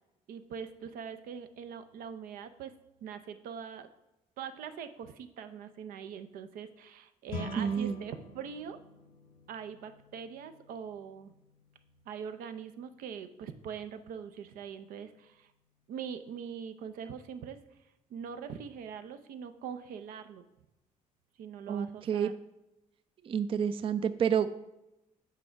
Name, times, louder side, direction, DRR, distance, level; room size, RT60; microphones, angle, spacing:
voice 1, 0.3-2.7 3.0-3.9 4.4-8.8 9.5-11.3 12.1-15.5 15.9-17.6 18.1-20.4 21.4-22.3, right 7 dB, 85° right, 9 dB, 0.6 m, -42 dB
sound 1, 7.3-16.8, left 3 dB, 90° left, 0.9 m, -49 dB
voice 2, 7.6-8.0 21.7-22.3 23.2-24.5, right 8 dB, 40° right, 12 dB, 0.4 m, -29 dB
7.7 x 4.7 x 4.5 m, 0.94 s
cardioid pair, 90°, 14 cm